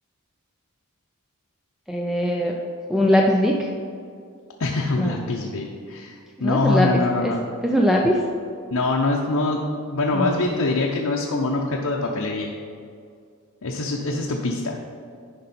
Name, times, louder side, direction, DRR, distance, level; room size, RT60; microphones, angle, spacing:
voice 1, 1.9-2.6 2.9-3.7 5.0-5.2 6.4-7.4 7.6-8.2 10.1-10.4, equal, ahead, 0 dB, 0.4 m, -21 dB
voice 2, 4.6-7.4 8.7-12.5 13.6-14.8, left 2 dB, 75° left, -1 dB, 0.7 m, -24 dB
10.5 x 5.3 x 4.2 m, 2.2 s
head